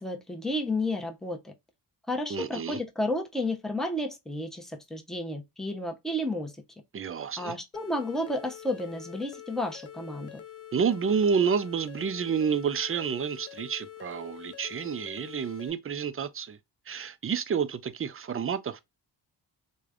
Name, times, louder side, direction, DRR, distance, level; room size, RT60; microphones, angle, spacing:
voice 1, 0.0-1.5 2.1-6.5 7.4-10.4, left 1 dB, ahead, 0.8 m, -32 dB
voice 2, 2.3-2.8 6.9-7.6 10.7-16.6 16.9-18.9, right 6 dB, 30° right, 0.4 m, -29 dB
sound 1, 7.7-15.7, left 11 dB, 35° left, 0.4 m, -46 dB
3.2 x 2.2 x 2.4 m
cardioid pair, 45°, 47 cm